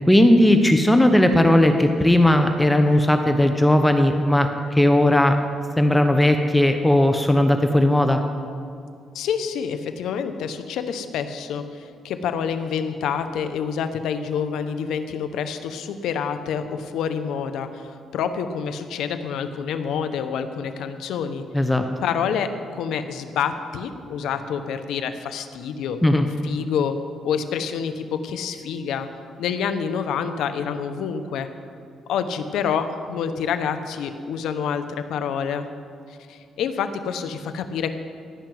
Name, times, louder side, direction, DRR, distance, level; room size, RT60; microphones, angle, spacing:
voice 1, 0.1-5.4 5.8-8.2 21.5-21.8 26.0-26.3, left 1 dB, 10° left, 6 dB, 0.9 m, -17 dB
voice 2, 9.1-21.4 22.0-26.0 26.4-27.0 27.2-29.1 29.4-31.5 32.1-35.7 36.1-37.9, left 7 dB, 80° left, 9 dB, 0.9 m, -27 dB
16.0 x 6.0 x 9.3 m, 2.4 s
cardioid pair, 90°, 0 cm